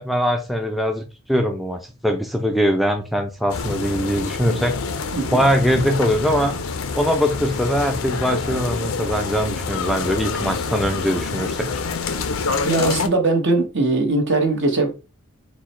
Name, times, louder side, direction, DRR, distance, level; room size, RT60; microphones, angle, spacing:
voice 1, 0.0-4.8 5.3-6.5 6.9-11.7, equal, ahead, 0.4 m, -22 dB
sound 1, 3.5-13.1, left 4 dB, 85° left, 0.6 m, -27 dB
voice 2, 12.6-14.9, right 3 dB, 60° right, 1.1 m, -20 dB
4.6 x 2.2 x 4.1 m
head